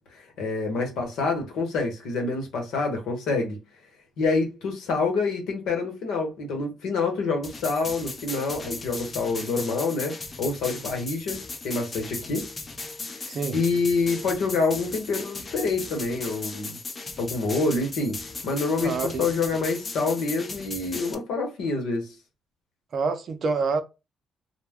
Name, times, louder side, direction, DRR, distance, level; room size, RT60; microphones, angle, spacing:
voice 1, 0.4-3.6 4.2-12.5 13.2-16.8 17.2-22.1, left 3 dB, 85° left, 0.9 m, -27 dB
sound 1, 7.4-21.1, left 3 dB, 35° left, 0.5 m, -37 dB
voice 2, 18.8-19.3 22.9-23.8, right 4 dB, 55° right, 0.5 m, -27 dB
2.2 x 2.1 x 3.4 m
cardioid pair, 90°, 0 cm